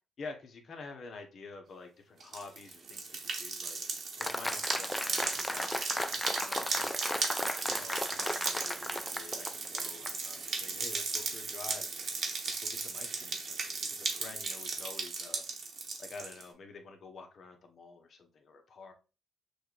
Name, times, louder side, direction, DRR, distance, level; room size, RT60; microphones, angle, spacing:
voice 1, 0.2-3.8 4.2-5.9 6.4-7.1 7.7-12.0 12.5-15.4 16.0-18.9, left 4 dB, 55° left, 4 dB, 1.0 m, -49 dB
sound 1, 2.2-16.4, right 4 dB, 55° right, 1.1 m, -36 dB
Applause, 4.2-10.1, left 1 dB, 10° left, 0.3 m, -35 dB
6.4 x 2.5 x 2.4 m, 0.33 s
cardioid pair, 90°, 0 cm